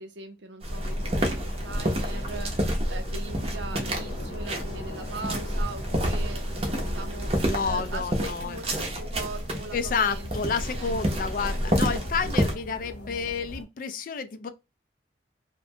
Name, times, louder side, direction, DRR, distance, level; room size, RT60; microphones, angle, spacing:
voice 1, 0.0-10.3 10.8-11.0, right 3 dB, 75° right, 0.6 m, -40 dB
sound 1, 0.6-12.5, equal, 30° right, 0.6 m, -29 dB
sound 2, 0.7-13.6, left 1 dB, 65° left, 0.7 m, -39 dB
voice 2, 7.4-8.6 9.7-14.5, left 5 dB, 45° left, 0.3 m, -30 dB
2.5 x 2.1 x 2.6 m
head